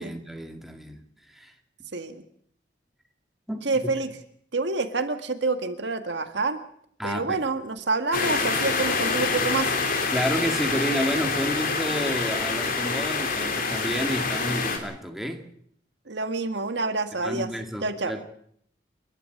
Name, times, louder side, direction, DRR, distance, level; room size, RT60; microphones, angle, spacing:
voice 1, 0.0-1.5 3.5-3.7 7.0-7.4 10.1-15.5 17.1-18.2, equal, ahead, 2.2 m, -30 dB
voice 2, 1.9-2.2 3.6-4.1 4.5-6.6 7.0-9.8 16.1-17.5 17.8-18.1, right 3 dB, 70° right, 1.8 m, -27 dB
sound 1, 8.1-14.8, left 4 dB, 50° left, 3.3 m, -26 dB
29.5 x 12.0 x 7.9 m
head